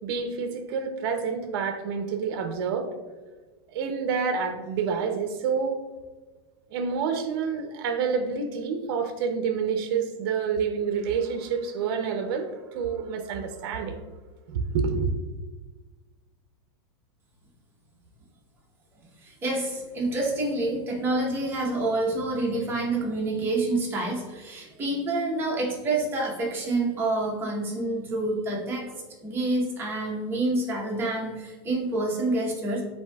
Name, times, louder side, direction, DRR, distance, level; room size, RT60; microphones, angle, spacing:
voice 1, 0.0-2.9 3.7-5.8 6.7-14.0 14.5-15.1, right 6 dB, 55° right, 6 dB, 0.6 m, -28 dB
voice 2, 19.2-28.9 29.2-32.8, right 2 dB, 15° right, -2 dB, 0.9 m, -27 dB
7.9 x 2.7 x 2.3 m, 1.3 s
supercardioid pair, 160°, 14 cm